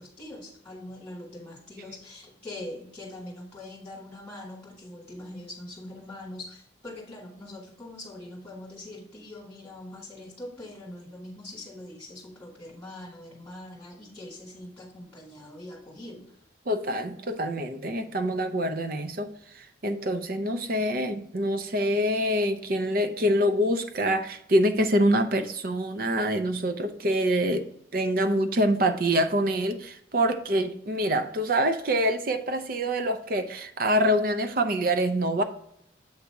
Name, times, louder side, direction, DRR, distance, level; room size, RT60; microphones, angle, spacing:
voice 1, 0.0-16.4, left 1 dB, 15° left, -5 dB, 1.6 m, -43 dB
voice 2, 16.7-27.7 27.9-35.4, equal, 50° right, 8 dB, 0.6 m, -25 dB
8.0 x 2.8 x 4.6 m, 0.73 s
head